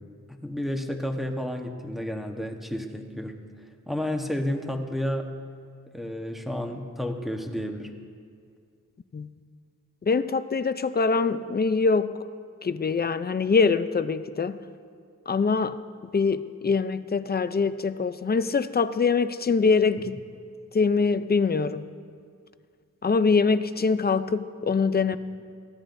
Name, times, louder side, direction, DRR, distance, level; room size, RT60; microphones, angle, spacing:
voice 1, 0.3-5.4 5.9-7.9 20.0-20.2, left 1 dB, ahead, 3 dB, 1.1 m, -31 dB
voice 2, 10.1-12.1 12.6-14.6 15.3-15.8 16.1-20.2 20.7-21.9 23.0-25.2, left 4 dB, 30° left, 12 dB, 0.5 m, -23 dB
23.0 x 15.5 x 2.6 m, 2.2 s
wide cardioid pair, 110°, 32 cm